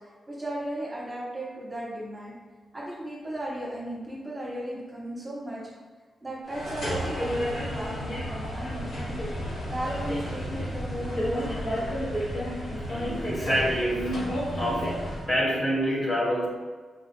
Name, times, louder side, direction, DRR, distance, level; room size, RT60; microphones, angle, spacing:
voice 1, 0.3-2.3 2.7-5.6 6.2-9.2 9.7-11.9, right 1 dB, 20° right, -8 dB, 0.9 m, -36 dB
sound 1, 6.5-15.3, equal, 80° left, 1.4 m, -31 dB
voice 2, 12.9-14.2 14.6-15.0 15.3-16.5, equal, 30° left, -5 dB, 1.1 m, -27 dB
4.4 x 2.5 x 4.3 m, 1.4 s
wide cardioid pair, 150°, 0 cm